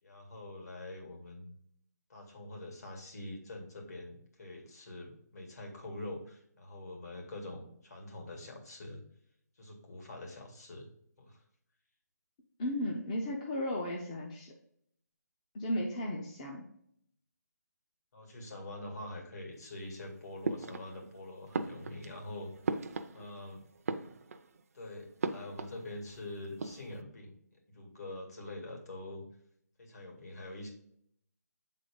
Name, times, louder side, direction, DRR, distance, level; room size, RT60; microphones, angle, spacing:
voice 1, 0.0-1.6 2.1-9.0 9.6-10.9 11.2-11.4 18.1-22.5 23.1-23.6 24.7-27.3 27.7-29.3 29.8-30.7, left 2 dB, 60° left, 1 dB, 2.2 m, -45 dB
voice 2, 12.6-14.5 15.5-16.7, left 1 dB, 20° left, 0 dB, 0.5 m, -35 dB
sound 1, 20.4-21.2 21.5-23.5 23.8-24.6 25.2-26.2 26.4-27.0, right 4 dB, 55° right, 0.5 m, -38 dB
7.6 x 3.8 x 3.6 m, 0.69 s
hypercardioid pair, 165°, 10 cm